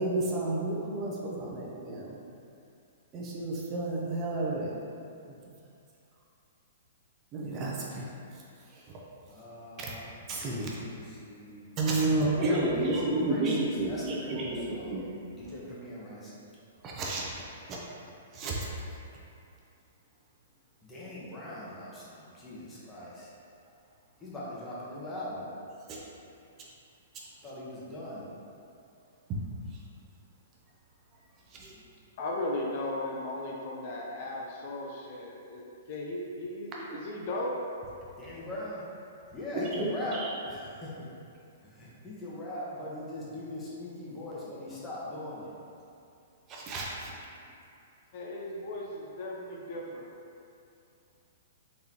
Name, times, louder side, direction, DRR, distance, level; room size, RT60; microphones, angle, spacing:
voice 1, 0.0-2.2 3.1-4.8 7.3-8.1 10.3-10.8 11.8-15.2 16.8-17.8 18.3-18.6 25.9-26.0 31.6-31.7 39.7-39.8 40.1-40.3 46.5-47.1, right 2 dB, 30° right, -4 dB, 0.7 m, -31 dB
voice 2, 9.3-10.0 10.7-11.6 12.2-15.0 15.3-16.4 20.8-23.3 24.2-25.5 27.4-28.3 31.7-31.9 38.2-38.8 39.3-41.1 41.7-45.5, left 1 dB, 20° left, -7 dB, 1.1 m, -40 dB
voice 3, 32.2-37.6 48.1-50.1, left 1 dB, 50° left, -2 dB, 0.6 m, -36 dB
3.9 x 3.5 x 2.9 m, 2.6 s
hypercardioid pair, 125°, 0 cm